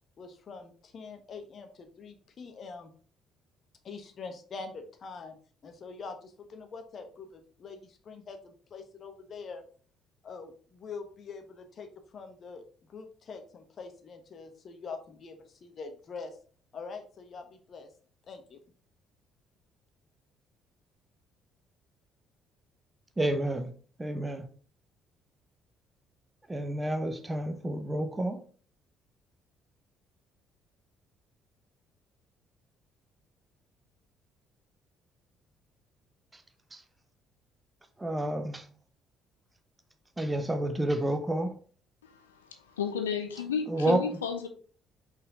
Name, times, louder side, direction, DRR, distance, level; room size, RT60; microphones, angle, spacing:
voice 1, 0.2-2.9 3.8-5.4 5.6-9.6 10.2-11.9 12.1-12.6 12.9-16.4 16.7-17.9 18.3-18.6, left 4 dB, 45° left, 1.2 m, -44 dB
voice 2, 23.2-23.7 24.0-24.5 26.5-28.4 36.7-36.8 38.0-38.7 40.2-41.5 43.7-44.0, right 1 dB, 15° right, 1.1 m, -29 dB
voice 3, 42.0-44.5, left 7 dB, 80° left, 0.6 m, -33 dB
5.6 x 4.4 x 3.8 m
figure-of-eight pair, 50°, 0 cm